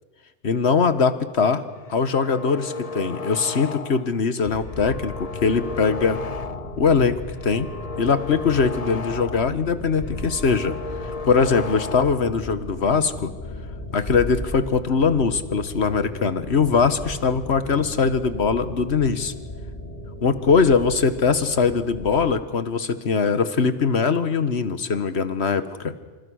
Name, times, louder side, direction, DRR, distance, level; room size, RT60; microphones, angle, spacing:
voice 1, 0.4-6.2 6.8-7.7 8.0-10.8 11.2-13.3 13.9-19.3 20.2-25.9, left 5 dB, 85° left, 12 dB, 1.6 m, -21 dB
sound 1, 1.8-4.2 4.5-6.9 7.2-9.6 9.9-12.3, left 4 dB, 40° left, 0.9 m, -35 dB
sound 2, 4.4-22.4, left 1 dB, 55° left, 3.4 m, -36 dB
27.5 x 27.0 x 6.4 m, 1.3 s
omnidirectional pair, 1.1 m